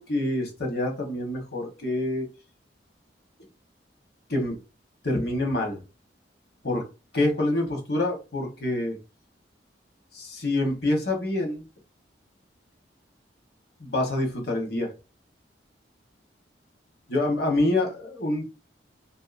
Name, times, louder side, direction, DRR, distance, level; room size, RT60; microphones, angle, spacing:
voice 1, 0.0-2.3 4.3-4.6 5.0-5.8 6.6-6.8 7.1-9.0 10.1-11.6 13.8-14.9 17.1-18.4, left 1 dB, 60° left, 1.0 m, -26 dB
2.7 x 2.7 x 2.4 m
head